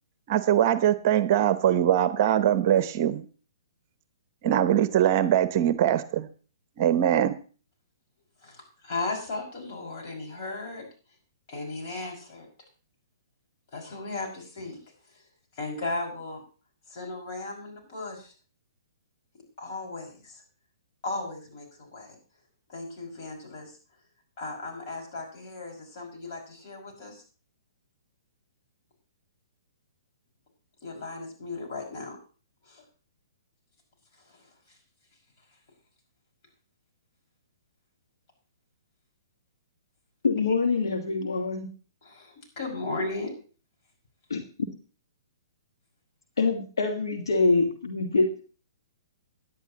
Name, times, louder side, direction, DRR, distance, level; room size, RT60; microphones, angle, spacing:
voice 1, 0.3-3.2 4.4-6.3 6.8-7.3, right 10 dB, 40° right, 14 dB, 0.8 m, -22 dB
voice 2, 8.4-10.8 11.5-12.5 13.7-14.8 15.1-15.2 15.5-16.4 16.9-18.3 19.6-20.4 21.0-22.1 22.7-23.8 24.4-27.2 30.8-32.2 32.6-32.8 34.1-34.5 40.4-40.5 42.0-43.3, left 3 dB, 45° left, 0 dB, 5.7 m, -36 dB
voice 3, 40.2-41.7 44.3-44.4 46.4-48.4, left 3 dB, 75° left, 4 dB, 1.6 m, -25 dB
17.0 x 10.5 x 3.0 m, 0.38 s
figure-of-eight pair, 125°, 2 cm